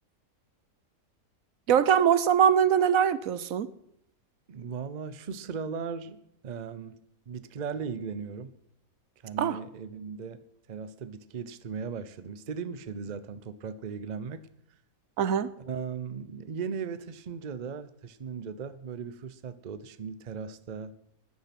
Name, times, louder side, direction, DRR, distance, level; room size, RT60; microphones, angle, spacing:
voice 1, 1.7-3.7 9.4-9.6 15.2-15.5, right 8 dB, 75° right, 1.1 m, -22 dB
voice 2, 4.5-6.2 6.4-7.0 7.3-8.6 9.2-10.4 10.7-14.5 15.6-21.0, right 6 dB, 40° right, 0.7 m, -37 dB
15.0 x 10.0 x 5.9 m
omnidirectional pair, 1.5 m